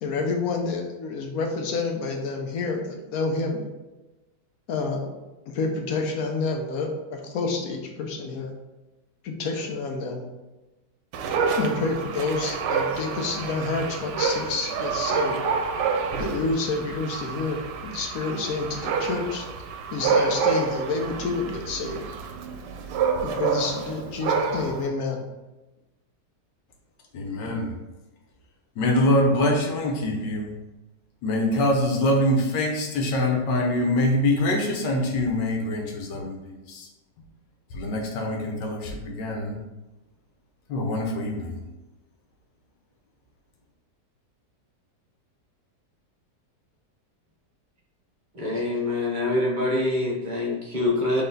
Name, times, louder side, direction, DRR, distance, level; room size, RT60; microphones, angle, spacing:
voice 1, 0.0-3.7 4.7-5.1 5.5-8.5 9.2-10.2 11.6-15.5 16.2-19.5 19.9-22.0 23.2-25.3, left 3 dB, 65° left, 3 dB, 1.0 m, -28 dB
Dog, 11.1-24.9, right 5 dB, 80° right, 1.2 m, -28 dB
voice 2, 27.1-27.7 28.8-30.5 31.2-36.4 36.7-36.9 37.7-39.6 40.7-41.6, left 1 dB, 85° left, 1 dB, 1.4 m, -24 dB
voice 3, 48.3-51.2, left 2 dB, 40° right, -3 dB, 0.7 m, -25 dB
4.2 x 3.2 x 3.9 m, 1.1 s
omnidirectional pair, 1.9 m